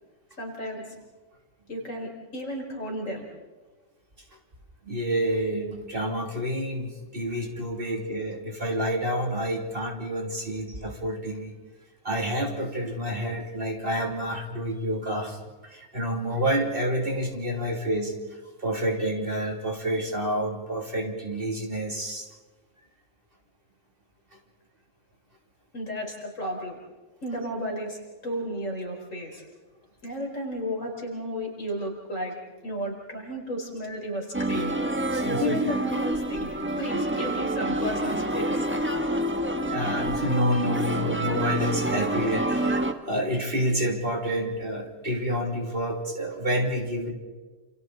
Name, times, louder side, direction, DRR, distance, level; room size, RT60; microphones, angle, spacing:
voice 1, 0.4-0.9 1.7-3.2 25.7-26.8 27.2-28.0 28.2-29.4 30.0-32.3 32.6-34.8 35.4-36.5 36.8-38.7, equal, 75° left, 0 dB, 5.1 m, -33 dB
voice 2, 4.9-11.5 12.0-15.4 15.6-18.1 18.6-22.3 35.1-35.6 39.7-47.1, equal, 45° right, 1 dB, 3.1 m, -28 dB
sound 1, 34.3-42.9, right 1 dB, 10° right, 1.2 m, -27 dB
28.5 x 28.0 x 4.0 m, 1.3 s
omnidirectional pair, 1.3 m